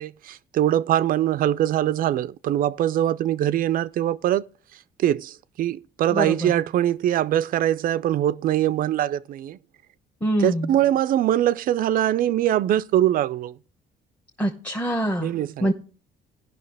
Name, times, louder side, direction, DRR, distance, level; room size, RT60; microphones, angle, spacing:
voice 1, 0.0-4.4 5.0-9.6 10.4-13.6 15.2-15.7, right 12 dB, 55° right, 0.4 m, -22 dB
voice 2, 6.1-6.5 10.2-10.7 14.4-15.3 15.6-15.7, right 1 dB, 10° left, 1.0 m, -24 dB
16.0 x 5.8 x 3.4 m
cardioid pair, 110°, 17 cm